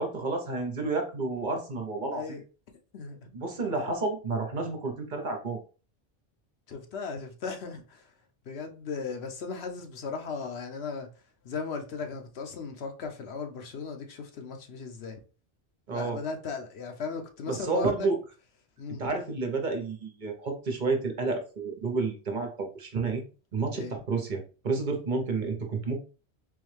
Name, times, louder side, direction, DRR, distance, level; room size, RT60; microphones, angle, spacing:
voice 1, 0.0-2.4 3.3-5.6 15.9-16.2 17.5-18.2 19.0-23.2 23.5-26.0, right 3 dB, 50° right, 0.9 m, -30 dB
voice 2, 2.1-2.4 2.9-3.3 6.7-8.1 8.5-11.1 11.4-15.2 15.9-18.1 18.8-19.0 23.7-24.0, left 5 dB, 80° left, 1.0 m, -37 dB
3.8 x 3.1 x 3.1 m
omnidirectional pair, 1.1 m